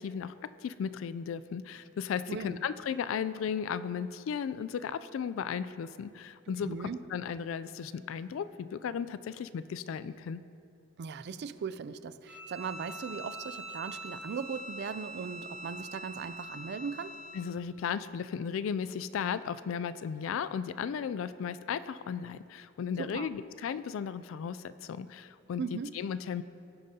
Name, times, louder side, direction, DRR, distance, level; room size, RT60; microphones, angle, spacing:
voice 1, 0.0-10.4 17.3-26.4, left 7 dB, 75° left, 14 dB, 0.3 m, -35 dB
voice 2, 6.6-7.0 11.0-17.1 23.0-23.3 25.6-25.9, right 6 dB, 55° right, 14 dB, 0.4 m, -38 dB
Bowed string instrument, 12.3-17.5, right 1 dB, 5° right, 2.5 m, -44 dB
17.0 x 8.9 x 2.8 m, 2.6 s
head